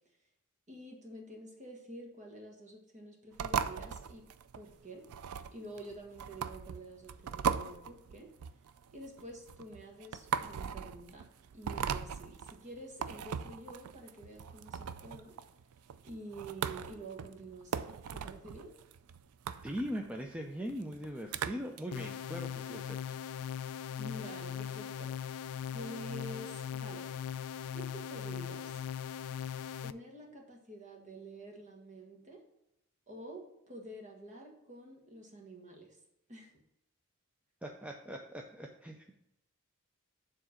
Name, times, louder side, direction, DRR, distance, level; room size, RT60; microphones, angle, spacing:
voice 1, 0.7-4.2 4.5-5.0 5.5-8.3 8.9-15.3 16.0-18.7 24.0-25.4 25.7-27.1 27.7-28.7 29.8-32.4 33.1-36.0 36.3-36.5, right 1 dB, 35° right, 1 dB, 1.5 m, -48 dB
sound 1, 3.4-21.8, right 7 dB, 80° right, 0.4 m, -39 dB
voice 2, 19.6-23.0 37.6-39.1, equal, 5° right, 1 dB, 0.4 m, -40 dB
sound 2, 21.9-29.9, left 8 dB, 75° left, 0.3 m, -40 dB
7.2 x 3.7 x 6.4 m, 0.84 s
head